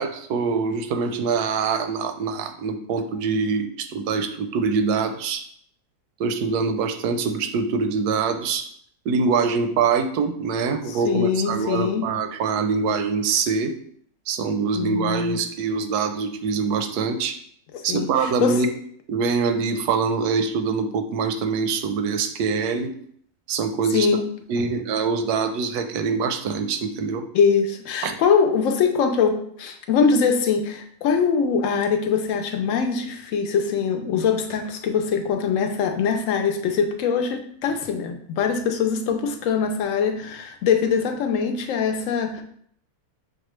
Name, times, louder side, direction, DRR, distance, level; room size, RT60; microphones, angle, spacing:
voice 1, 0.0-5.5 6.2-8.7 9.1-13.8 14.3-17.4 17.8-18.7 19.1-22.9 23.5-24.1 24.5-27.3 28.0-28.1, right 5 dB, 85° right, 7 dB, 1.1 m, -24 dB
voice 2, 10.9-12.1 14.7-15.4 17.7-18.6 23.9-24.3 27.3-42.4, left 6 dB, 70° left, 6 dB, 0.8 m, -23 dB
6.4 x 2.3 x 3.0 m, 0.64 s
omnidirectional pair, 1.6 m